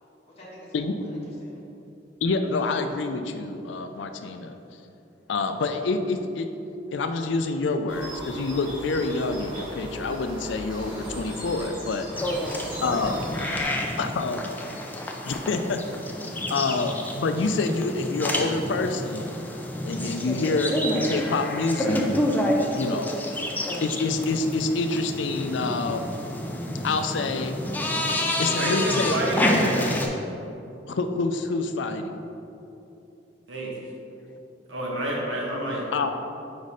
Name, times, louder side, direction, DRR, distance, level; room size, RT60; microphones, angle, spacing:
voice 1, 0.3-1.7 12.9-14.0, equal, 35° left, -8 dB, 1.3 m, -47 dB
voice 2, 2.2-4.6 5.3-6.5 6.9-12.1 12.8-13.2 14.0-14.4 15.3-15.8 16.3-19.2 19.8-22.1 22.7-23.1 23.8-26.1 26.8-27.6 28.4-29.2 30.9-32.2 35.9-36.1, left 3 dB, 70° left, 7 dB, 0.4 m, -27 dB
sound 1, 7.9-13.6, equal, 30° right, 1.4 m, -37 dB
sound 2, 12.2-30.1, left 1 dB, 10° left, 0.5 m, -29 dB
voice 3, 28.3-29.9 33.5-33.7 34.7-35.8, right 1 dB, 90° right, -3 dB, 1.3 m, -29 dB
5.1 x 4.2 x 4.8 m, 2.9 s
head